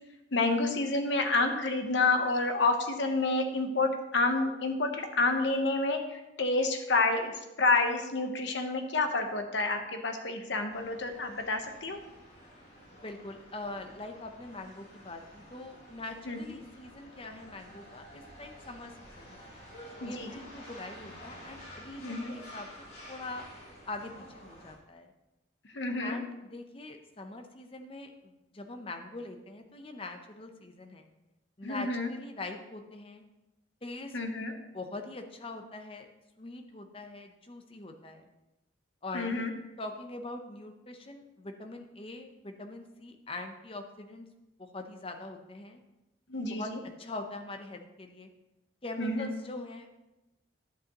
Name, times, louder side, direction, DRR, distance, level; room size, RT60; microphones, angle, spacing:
voice 1, 0.3-12.0 16.3-16.4 20.0-20.3 22.0-22.4 25.7-26.2 31.6-32.1 34.1-34.5 39.1-39.5 46.3-46.8 49.0-49.3, left 3 dB, 70° left, 5 dB, 1.0 m, -29 dB
sound 1, 10.7-24.7, equal, 50° left, 3.3 m, -50 dB
voice 2, 13.0-19.5 20.0-22.7 23.1-23.5 23.9-25.1 26.0-31.1 31.6-33.2 33.8-34.2 34.7-36.1 36.4-38.3 39.0-39.5 39.8-44.3 44.6-45.8 46.5-46.7 47.0-48.3 48.8-49.9, left 2 dB, 30° left, 5 dB, 0.7 m, -43 dB
11.0 x 7.8 x 3.0 m, 1.0 s
head